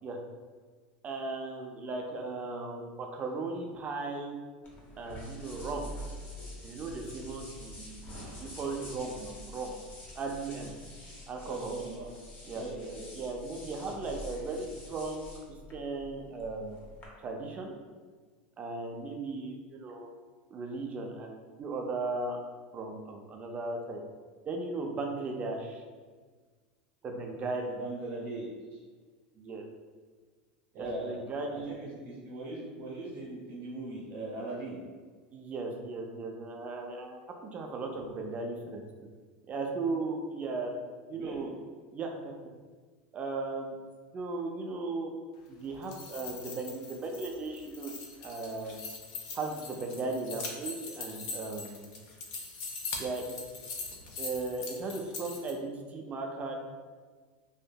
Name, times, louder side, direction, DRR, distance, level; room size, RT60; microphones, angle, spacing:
voice 1, 1.0-4.4 5.0-5.8 6.6-9.7 10.1-10.7 11.3-11.7 12.4-12.6 13.2-15.3 15.7-16.9 17.2-17.7 18.6-20.1 20.5-22.4 22.7-24.0 24.5-25.8 27.0-27.8 29.4-29.7 30.8-31.8 35.3-38.8 39.5-40.7 41.1-41.6 41.9-42.3 43.1-43.7 44.1-45.1 45.5-47.9 48.2-48.8 49.3-51.9 53.0-53.3 54.2-56.5, right 3 dB, 30° right, 2 dB, 0.4 m, -37 dB
sound 1, 4.6-17.1, left 1 dB, 30° left, 0.7 m, -46 dB
voice 2, 11.4-12.1 12.5-13.1 27.8-28.5 30.7-31.2 31.5-34.8 41.1-41.5, right 2 dB, 60° right, -4 dB, 0.9 m, -40 dB
sound 2, 45.7-55.5, left 4 dB, 60° left, 0.5 m, -42 dB
2.7 x 2.5 x 2.2 m, 1.5 s
supercardioid pair, 110°, 5 cm